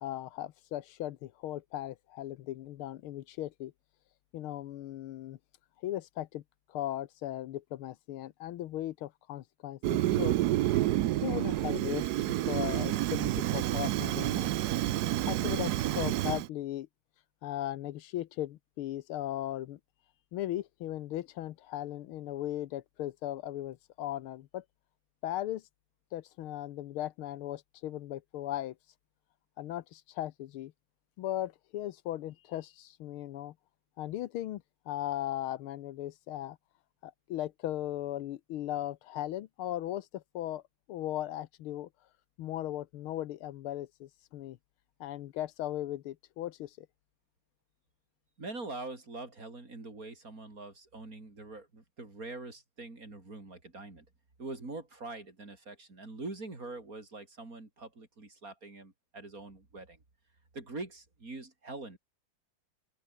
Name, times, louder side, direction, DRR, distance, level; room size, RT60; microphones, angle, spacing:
voice 1, 0.0-3.7 4.3-5.4 5.8-6.4 6.7-10.4 11.2-14.5 15.2-16.9 17.4-19.8 20.3-24.6 25.2-25.6 26.1-28.7 29.6-30.7 31.2-33.5 34.0-36.6 37.0-40.6 40.9-41.9 42.4-44.6 45.0-46.9, left 13 dB, 80° left, 1.7 m, -37 dB
Fire, 9.8-16.5, right 14 dB, 75° right, 0.9 m, -29 dB
voice 2, 48.4-54.1 54.4-60.0 60.5-62.0, right 3 dB, 40° right, 4.6 m, -44 dB
open air
omnidirectional pair, 2.3 m